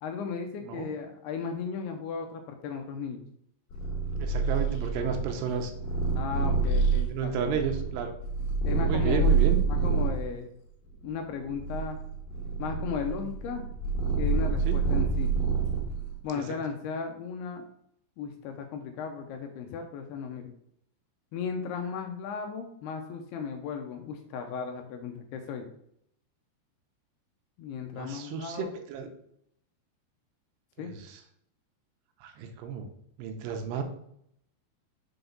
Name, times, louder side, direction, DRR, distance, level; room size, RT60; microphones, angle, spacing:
voice 1, 0.0-3.2 6.1-7.6 8.6-9.3 9.7-10.5 11.0-12.0 12.6-13.6 14.2-15.3 16.2-17.6 18.2-20.5 21.3-25.7 27.6-28.7 30.8-30.9, left 6 dB, 80° left, 4 dB, 2.4 m, -35 dB
Purr, 3.7-10.2 10.9-16.1, right 4 dB, 55° left, 2.4 m, -27 dB
voice 2, 4.2-5.7 7.1-8.1 8.9-9.6 14.7-14.8 16.3-16.4 27.9-29.1 30.8-31.2 32.2-32.9 33.2-33.8, right 6 dB, 80° right, 5 dB, 2.8 m, -32 dB
6.9 x 4.0 x 5.3 m, 0.72 s
omnidirectional pair, 5.1 m